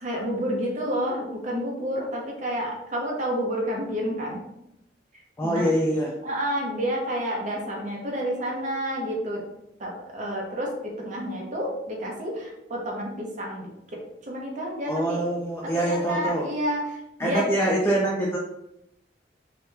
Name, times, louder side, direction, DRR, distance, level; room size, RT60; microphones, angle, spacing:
voice 1, 0.0-4.4 5.4-5.7 6.2-9.4 9.8-13.7 14.2-15.2 15.7-17.5, equal, 45° right, -1 dB, 0.8 m, -29 dB
voice 2, 5.4-6.1 14.9-16.4 17.2-18.4, right 1 dB, 15° left, -4 dB, 0.4 m, -24 dB
2.9 x 2.3 x 3.2 m, 0.82 s
head